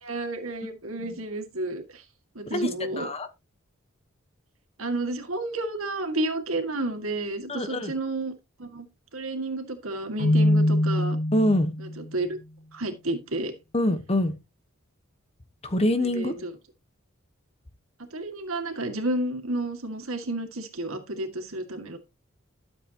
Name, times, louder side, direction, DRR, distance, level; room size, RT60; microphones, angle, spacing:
voice 1, 0.0-2.0 2.4-3.1 4.8-8.3 8.6-8.9 9.1-11.2 12.1-12.4 12.7-13.5 16.1-16.5 18.1-22.0, right 2 dB, 85° right, 2.0 m, -31 dB
voice 2, 3.0-3.3 7.5-7.9 11.3-11.7 13.7-14.4 15.6-16.4, left 1 dB, 30° left, 1.1 m, -25 dB
Keyboard (musical), 10.2-12.0, left 1 dB, 50° left, 5.9 m, -23 dB
12.5 x 7.4 x 2.9 m
head